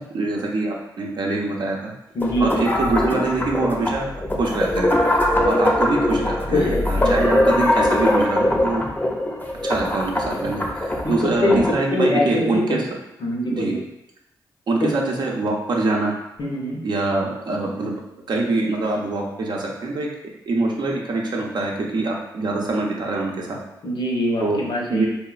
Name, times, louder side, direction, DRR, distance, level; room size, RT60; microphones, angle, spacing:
voice 1, 0.0-1.9 2.4-4.1 4.3-8.8 9.6-12.8 13.5-13.7 14.7-16.1 16.8-18.0 18.3-20.1 20.5-23.6 24.4-24.6 24.9-25.1, right 2 dB, 60° right, -1 dB, 0.6 m, -24 dB
voice 2, 2.1-2.5 6.5-7.5 11.0-11.1 11.4-11.6 11.9-12.8 13.2-13.8 14.8-14.9 16.4-16.8 23.8-25.1, left 1 dB, 60° left, -1 dB, 0.6 m, -23 dB
sound 1, 2.2-11.8, left 1 dB, 20° left, 0.5 m, -21 dB
3.0 x 2.0 x 2.4 m, 0.85 s
supercardioid pair, 45°, 8 cm